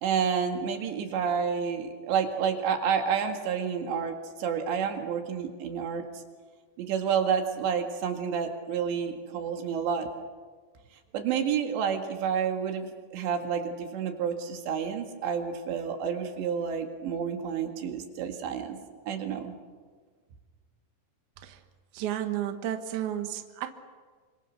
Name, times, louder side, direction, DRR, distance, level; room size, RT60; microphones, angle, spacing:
voice 1, 0.0-6.0 6.8-10.1 11.1-19.5, right 7 dB, 85° right, 4 dB, 4.2 m, -29 dB
voice 2, 21.9-23.7, right 11 dB, 60° right, 6 dB, 2.4 m, -32 dB
27.0 x 26.0 x 6.6 m, 1.5 s
omnidirectional pair, 4.9 m